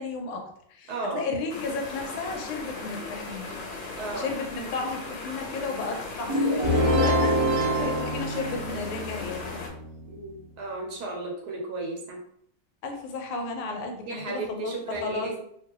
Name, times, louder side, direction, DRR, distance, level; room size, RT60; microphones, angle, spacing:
voice 1, 0.0-3.5 4.1-9.7 12.8-15.4, left 3 dB, 85° left, 3 dB, 1.6 m, -34 dB
voice 2, 0.9-1.2 4.0-4.3 10.1-12.2 14.1-15.3, right 3 dB, 60° right, -1 dB, 1.1 m, -34 dB
sound 1, 1.5-9.7, left 3 dB, 70° left, 1.4 m, -38 dB
sound 2, 6.3-9.1, right 1 dB, 85° right, 0.8 m, -25 dB
sound 3, 6.6-10.4, left 3 dB, 35° left, 0.8 m, -31 dB
3.2 x 2.9 x 3.0 m, 0.68 s
omnidirectional pair, 2.3 m